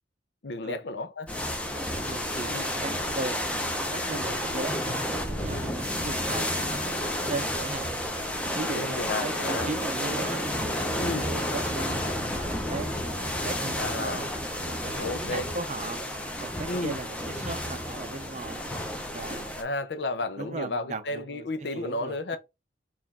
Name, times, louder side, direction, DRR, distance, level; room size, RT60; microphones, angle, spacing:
voice 1, 0.4-1.3 2.5-2.7 8.8-9.7 11.0-11.3 13.7-14.2 15.0-15.5 16.7-17.0 19.6-22.4, left 2 dB, 70° left, 0.6 m, -32 dB
sound 1, 1.3-19.6, left 1 dB, 5° left, 0.6 m, -31 dB
voice 2, 2.0-7.0 7.3-8.0 8.5-14.3 14.6-16.0 16.4-18.7 19.1-19.6 20.4-22.4, right 3 dB, 40° right, 0.5 m, -38 dB
4.2 x 2.5 x 4.1 m
head